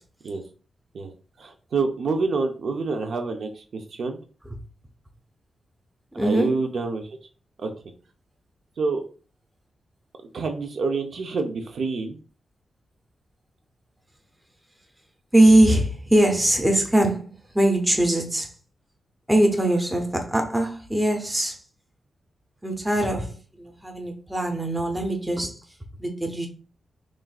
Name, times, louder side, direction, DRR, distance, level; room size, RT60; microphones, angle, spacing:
voice 1, 1.4-4.2 6.2-7.1 7.6-7.7 8.8-9.0 10.3-12.2, right 4 dB, 55° right, 0.6 m, -27 dB
voice 2, 6.1-6.6 15.3-18.5 19.3-21.6 22.6-25.6 26.0-26.5, right 1 dB, 5° right, 0.6 m, -21 dB
6.1 x 2.5 x 2.3 m
wide cardioid pair, 165°, 0 cm